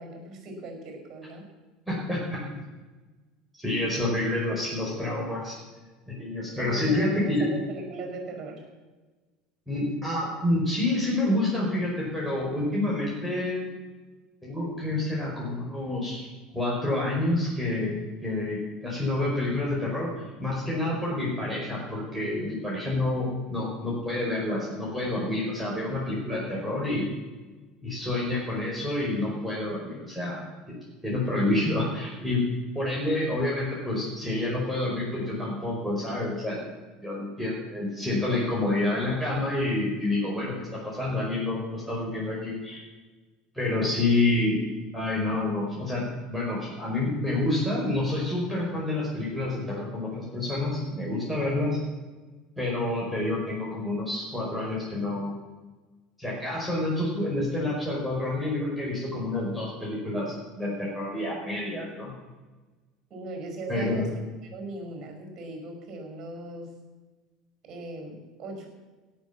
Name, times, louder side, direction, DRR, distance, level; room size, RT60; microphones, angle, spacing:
voice 1, 0.0-1.5 6.6-8.7 43.8-43.9 63.1-64.1 64.4-66.7 67.6-68.7, right 2 dB, 40° right, 3 dB, 5.5 m, -38 dB
voice 2, 1.9-2.4 3.6-5.6 6.1-7.5 9.7-13.6 14.4-16.3 16.5-27.1 27.8-30.5 31.0-32.4 32.8-36.6 37.0-42.8 43.5-44.6 44.9-51.8 52.6-55.3 56.2-62.1 63.7-64.0, left 2 dB, ahead, -6 dB, 5.2 m, -28 dB
17.0 x 7.0 x 7.5 m, 1.3 s
hypercardioid pair, 70°, 0 cm